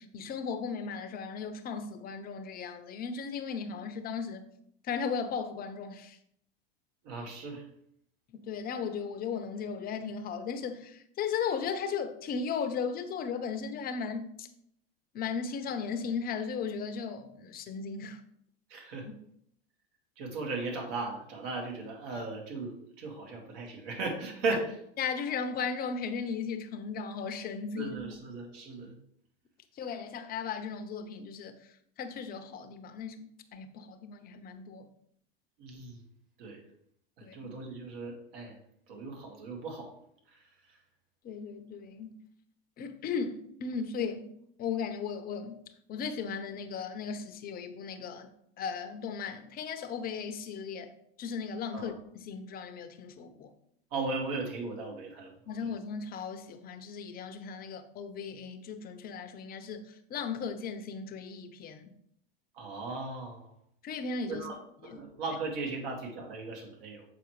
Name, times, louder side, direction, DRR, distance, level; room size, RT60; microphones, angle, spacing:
voice 1, 0.0-4.5 4.8-6.2 8.3-14.5 15.1-18.2 19.0-19.1 25.0-28.0 29.8-31.6 32.0-34.9 37.2-37.5 41.2-42.2 42.8-44.3 44.6-45.6 45.9-50.9 51.2-53.5 55.5-61.9 63.8-64.5 64.8-65.0, left 6 dB, 30° left, 0.7 m, -36 dB
voice 2, 7.0-7.6 18.7-19.1 20.2-24.6 27.8-28.9 35.6-36.0 36.4-36.6 37.3-38.5 38.9-39.9 51.7-51.9 53.9-55.3 55.6-55.7 62.6-63.5 64.3-64.6 64.9-67.0, right 3 dB, 65° right, 2.0 m, -37 dB
6.9 x 4.5 x 3.2 m
hypercardioid pair, 110°, 31 cm